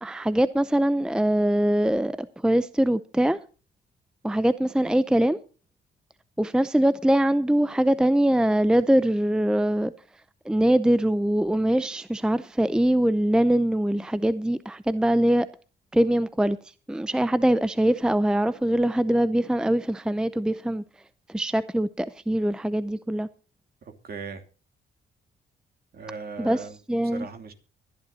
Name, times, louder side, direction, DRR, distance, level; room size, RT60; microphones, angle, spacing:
voice 1, 0.0-3.4 4.2-5.4 6.4-9.9 10.5-15.5 15.9-16.6 16.9-20.8 21.3-23.3 26.4-26.6 26.9-27.3, right 1 dB, 5° right, 0.5 m, -23 dB
voice 2, 23.8-24.4 25.9-26.8 27.1-27.5, right 4 dB, 50° right, 2.8 m, -38 dB
24.0 x 10.5 x 2.8 m
cardioid pair, 90°, 20 cm